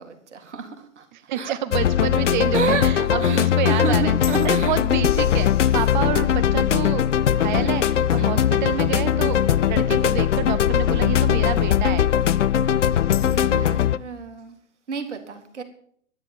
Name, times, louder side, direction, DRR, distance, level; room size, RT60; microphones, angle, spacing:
voice 1, 0.0-1.1 1.3-1.5 2.5-4.8 6.2-6.3 7.5-7.7 8.2-8.3 13.2-14.6 14.9-15.6, right 5 dB, 70° right, 6 dB, 2.2 m, -30 dB
voice 2, 1.1-12.1, right 10 dB, 40° right, 14 dB, 0.7 m, -29 dB
sound 1, 1.7-14.0, left 10 dB, 75° left, 0.6 m, -20 dB
12.0 x 9.9 x 7.1 m, 0.62 s
figure-of-eight pair, 110°, 37 cm